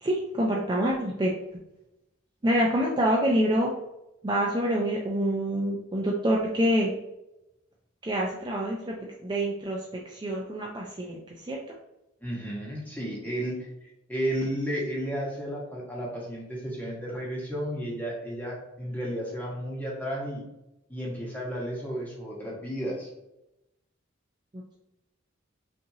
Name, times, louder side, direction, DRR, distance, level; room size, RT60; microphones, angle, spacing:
voice 1, 0.0-1.6 2.4-3.7 4.2-6.9 8.0-9.0 9.2-11.7 24.5-24.8, equal, 20° right, -2 dB, 0.4 m, -27 dB
voice 2, 12.2-20.4 20.9-23.1, equal, 10° left, -4 dB, 1.1 m, -33 dB
5.6 x 2.7 x 2.7 m, 0.90 s
head